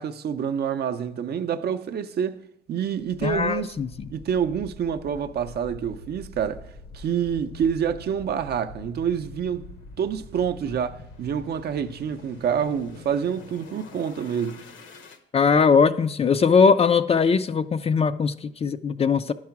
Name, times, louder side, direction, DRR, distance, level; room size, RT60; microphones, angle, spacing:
voice 1, 0.0-2.4 2.7-3.7 4.1-6.6 6.9-9.7 10.0-14.6, right 8 dB, 55° right, 0.5 m, -27 dB
sound 1, 3.0-15.2, left 2 dB, 75° left, 1.0 m, -45 dB
voice 2, 3.2-4.1 15.3-19.3, left 5 dB, 30° left, 0.3 m, -20 dB
10.5 x 4.8 x 5.8 m
cardioid pair, 90°, 20 cm